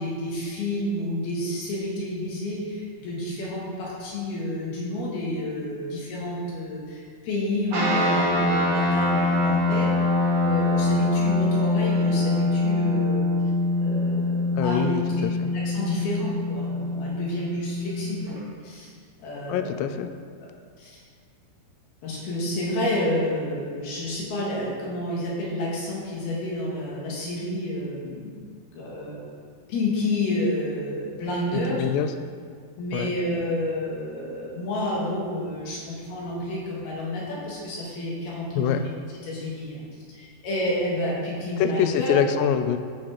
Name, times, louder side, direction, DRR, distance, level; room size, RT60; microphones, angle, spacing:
voice 1, 0.0-9.9 10.4-13.3 13.8-14.9 15.5-18.9 19.2-19.8 20.8-21.0 22.0-28.3 28.7-29.4 29.7-31.8 32.8-38.8 39.2-42.1, left 1 dB, 65° left, -5 dB, 3.5 m, -30 dB
sound 1, 7.7-18.4, left 2 dB, 45° right, 3.1 m, -24 dB
voice 2, 14.5-15.5 19.5-20.1 31.5-32.1 32.9-33.1 38.6-38.8 41.6-42.8, left 9 dB, 85° left, 8 dB, 2.7 m, -25 dB
14.0 x 5.6 x 4.8 m, 2.1 s
omnidirectional pair, 5.0 m